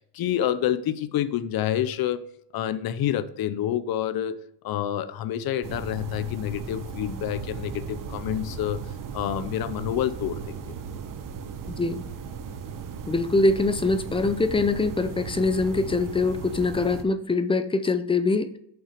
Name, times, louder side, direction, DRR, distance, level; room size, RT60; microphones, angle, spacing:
voice 1, 0.0-2.2 2.5-4.4 4.6-8.8 9.1-10.7, left 11 dB, 50° left, 13 dB, 0.7 m, -28 dB
sound 1, 5.6-17.0, right 6 dB, 45° right, 0.9 m, -37 dB
voice 2, 13.1-18.5, left 3 dB, 10° left, 11 dB, 0.4 m, -23 dB
7.4 x 5.7 x 5.2 m, 0.72 s
cardioid pair, 150°, 47 cm